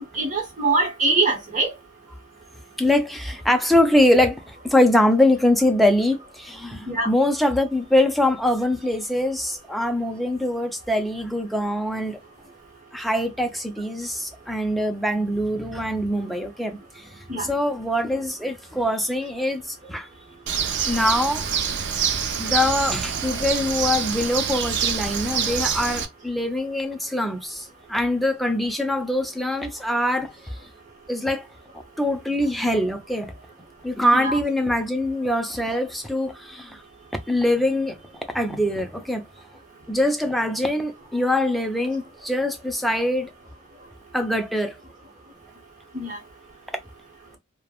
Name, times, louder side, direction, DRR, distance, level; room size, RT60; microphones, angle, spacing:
voice 1, 0.1-1.7 6.9-7.1 17.3-17.5 34.1-34.4 45.9-46.2, right 3 dB, 40° right, 1.1 m, -23 dB
voice 2, 2.8-12.2 12.9-17.1 17.4-20.1 20.8-21.6 22.4-30.3 31.1-31.5 32.0-33.3 33.8-36.8 37.3-38.0 38.3-39.2 39.9-43.3 44.1-44.8, left 1 dB, ahead, 0.4 m, -23 dB
Bird, 20.5-26.0, right 7 dB, 55° right, 0.4 m, -26 dB
3.2 x 2.1 x 2.3 m
head